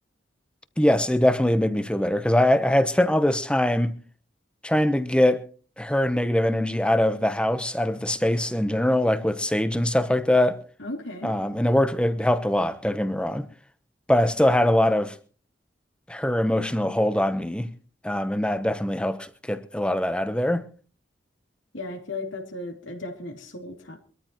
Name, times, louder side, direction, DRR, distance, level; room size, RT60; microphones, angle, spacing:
voice 1, 0.8-4.0 4.6-5.4 5.8-10.6 11.2-13.5 14.1-15.2 16.1-17.7 18.0-20.7, left 1 dB, 5° left, 0.9 m, -22 dB
voice 2, 10.8-11.3 21.7-24.0, left 2 dB, 85° left, 2.8 m, -35 dB
24.0 x 13.5 x 3.0 m
head